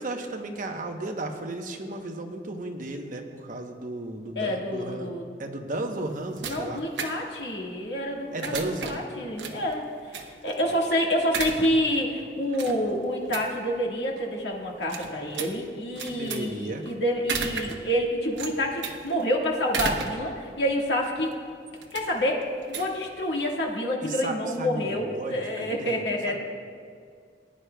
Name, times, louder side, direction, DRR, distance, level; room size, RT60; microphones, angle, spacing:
voice 1, 0.0-5.1 5.4-6.8 8.3-9.0 16.2-16.8 24.0-26.0 26.3-26.4, right 2 dB, 50° right, 4 dB, 0.9 m, -34 dB
voice 2, 4.4-5.4 6.4-9.9 10.2-21.3 21.9-26.3, equal, 80° left, -1 dB, 1.7 m, -28 dB
sound 1, 5.7-23.7, right 5 dB, 85° right, 0.9 m, -37 dB
19.5 x 10.0 x 2.3 m, 2.2 s
head